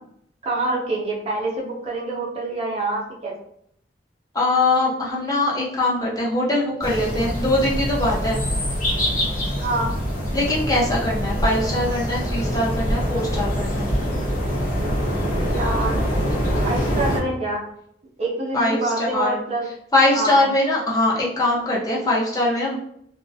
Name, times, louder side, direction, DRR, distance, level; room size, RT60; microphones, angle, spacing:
voice 1, 0.4-3.3 9.6-9.9 15.5-16.1 16.6-17.6 18.2-19.7 20.1-20.4, right 2 dB, 35° right, -3 dB, 0.5 m, -26 dB
voice 2, 4.3-8.4 10.3-13.9 18.5-19.4 19.9-22.8, left 2 dB, 20° left, -6 dB, 0.6 m, -22 dB
sound 1, 6.8-17.2, equal, 45° left, 0.9 m, -24 dB
2.3 x 2.0 x 2.6 m, 0.71 s
head